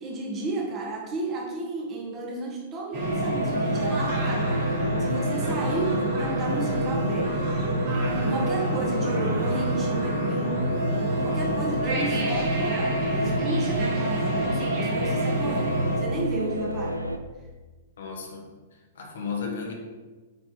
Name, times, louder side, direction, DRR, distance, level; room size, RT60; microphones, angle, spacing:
voice 1, 0.0-4.6 5.0-7.3 8.1-10.9 11.2-17.0, right 2 dB, 25° right, 0 dB, 1.6 m, -33 dB
sound 1, 2.9-16.0, right 1 dB, 40° right, 2.2 m, -29 dB
sound 2, 3.0-17.2, equal, 90° left, 0.5 m, -29 dB
voice 2, 18.0-18.5 18.9-19.7, left 5 dB, 60° left, 0 dB, 1.4 m, -33 dB
8.8 x 4.3 x 4.1 m, 1.3 s
figure-of-eight pair, 105°, 0 cm